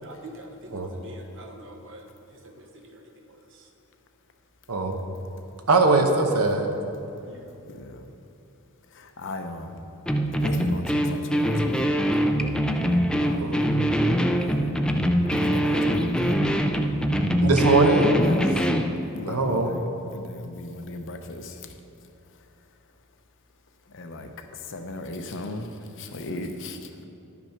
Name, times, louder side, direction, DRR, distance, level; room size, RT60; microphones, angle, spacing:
voice 1, 0.0-2.0 2.3-3.7 6.9-7.7, right 1 dB, 60° right, 3 dB, 1.1 m, -46 dB
voice 2, 4.7-5.0 5.7-6.7 13.3-13.7 17.4-18.1 19.3-19.7, right 3 dB, 75° right, 4 dB, 1.0 m, -21 dB
voice 3, 7.7-8.1 8.9-9.8 10.3-11.9 13.1-13.5 14.4-14.7 15.3-16.4 18.2-18.7 19.1-19.9 20.1-21.7 23.9-27.1, left 2 dB, 60° left, 6 dB, 0.7 m, -37 dB
sound 1, 10.1-18.9, equal, 5° left, 0.4 m, -23 dB
10.5 x 6.0 x 5.8 m, 2.7 s
head